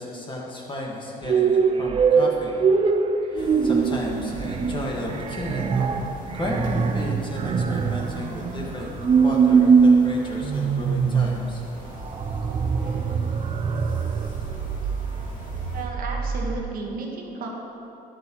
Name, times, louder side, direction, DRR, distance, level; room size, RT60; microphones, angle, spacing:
voice 1, 0.0-2.7 3.2-5.9 6.4-8.9 9.2-11.6, left 1 dB, 30° left, -2 dB, 1.5 m, -33 dB
sound 1, 1.2-16.6, right 5 dB, 35° right, 0.4 m, -23 dB
sound 2, 3.4-15.8, left 3 dB, 50° left, 1.9 m, -41 dB
voice 2, 15.7-17.5, right 3 dB, 60° right, 0 dB, 1.3 m, -33 dB
11.0 x 7.7 x 3.0 m, 2.8 s
cardioid pair, 110°, 17 cm